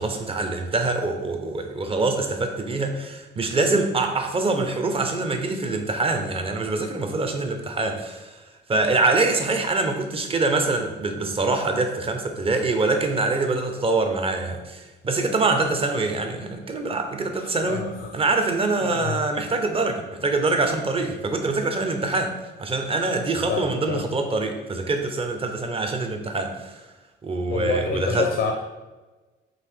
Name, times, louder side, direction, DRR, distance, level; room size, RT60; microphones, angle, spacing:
voice 1, 0.0-8.4 8.7-26.8 27.2-28.3, right 3 dB, 30° right, 5 dB, 0.5 m, -24 dB
voice 2, 17.4-18.1 18.8-19.2 23.5-24.1 27.5-28.5, left 6 dB, 65° left, 2 dB, 0.5 m, -28 dB
3.8 x 2.5 x 3.4 m, 1.2 s
cardioid pair, 90°, 20 cm